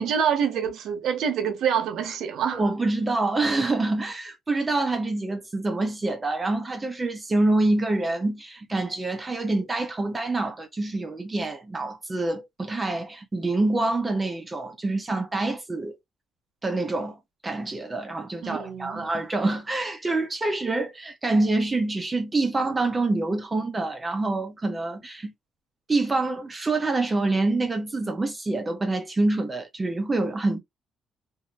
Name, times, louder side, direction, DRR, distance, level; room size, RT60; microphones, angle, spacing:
voice 1, 0.0-2.6 18.4-19.1, right 8 dB, 75° right, 0.9 m, -26 dB
voice 2, 2.5-16.0 16.6-25.3 25.9-30.6, right 2 dB, 25° right, 0.8 m, -26 dB
2.7 x 2.7 x 2.3 m
cardioid pair, 90°, 0 cm